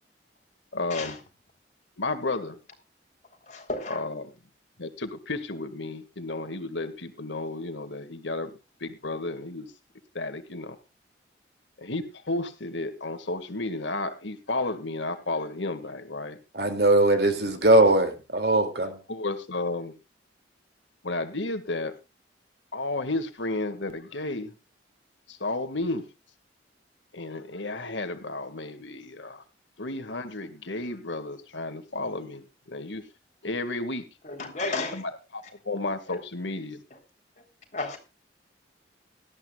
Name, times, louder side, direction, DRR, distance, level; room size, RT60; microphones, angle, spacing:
voice 1, 0.7-1.2 2.0-2.6 3.9-4.3 4.8-9.7 10.1-10.8 11.8-16.4 17.3-17.5 17.8-18.1 18.8-19.9 21.0-22.0 22.7-24.5 25.3-26.1 27.1-29.4 29.8-33.1 33.4-34.1 34.9-36.8, left 2 dB, 80° left, 1.9 m, -33 dB
voice 2, 3.5-4.0 34.4-35.0 37.7-38.0, left 3 dB, 40° left, 3.7 m, -32 dB
voice 3, 16.5-18.9, right 2 dB, 60° right, 2.6 m, -20 dB
18.0 x 13.0 x 2.4 m
head